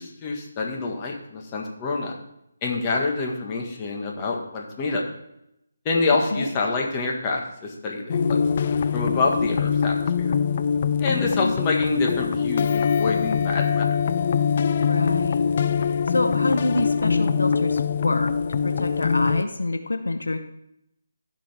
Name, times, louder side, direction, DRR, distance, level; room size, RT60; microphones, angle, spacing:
voice 1, 0.0-2.1 2.6-5.0 5.8-8.4 8.9-10.3 11.0-13.9, left 3 dB, 25° left, -1 dB, 1.6 m, -27 dB
sound 1, 8.1-19.4, left 6 dB, 45° left, 0.4 m, -23 dB
voice 2, 14.8-15.5 16.1-20.4, left 2 dB, 85° left, 7 dB, 0.8 m, -27 dB
15.0 x 5.2 x 3.5 m, 0.81 s
figure-of-eight pair, 155°, 0 cm